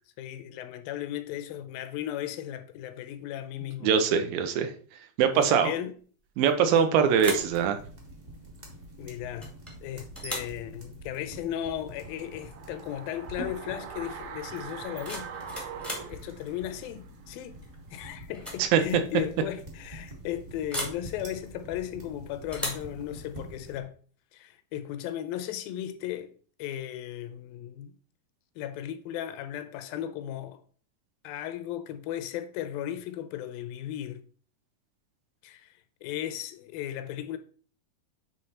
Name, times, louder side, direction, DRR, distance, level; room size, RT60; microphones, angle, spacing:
voice 1, 0.2-3.9 5.3-5.9 9.0-9.5 9.8-15.3 16.1-17.6 17.9-23.9 24.3-26.3 26.6-28.0 28.6-30.6 31.2-34.2 35.4-37.4, left 11 dB, 90° left, 2.4 m, -36 dB
voice 2, 3.8-4.7 5.2-5.7 6.4-7.8 18.6-18.8, right 7 dB, 90° right, 2.6 m, -22 dB
sound 1, 6.5-6.8 7.1-7.6 9.4-9.8 10.1-10.6 12.4-12.6 12.9-13.3 14.7-16.1 17.6-17.9 18.3-18.7 18.9-19.0 20.7-21.0 22.5-22.9, equal, ahead, 0.5 m, -37 dB
sound 2, 7.0-23.8, right 1 dB, 50° right, 0.8 m, -46 dB
sound 3, 11.9-17.0 17.3-17.4, right 7 dB, 75° right, 1.9 m, -43 dB
9.1 x 3.3 x 4.2 m
omnidirectional pair, 4.1 m